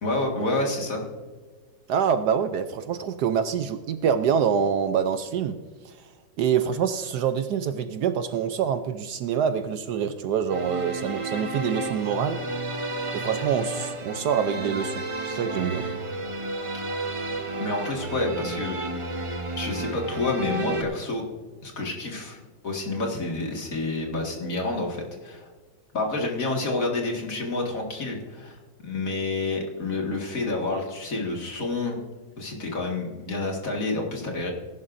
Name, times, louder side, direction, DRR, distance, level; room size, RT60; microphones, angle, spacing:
voice 1, 0.0-1.1 17.6-18.8 19.5-21.2 21.6-22.4 22.6-25.5 25.9-32.0 32.4-34.5, left 2 dB, 45° left, 0 dB, 2.3 m, -29 dB
voice 2, 1.9-5.6 5.8-6.0 6.4-12.4 13.1-15.9, right 7 dB, 70° right, 10 dB, 1.1 m, -26 dB
sound 1, 10.5-20.8, right 2 dB, 40° right, 0.4 m, -32 dB
19.0 x 11.0 x 2.6 m, 1.4 s
omnidirectional pair, 2.0 m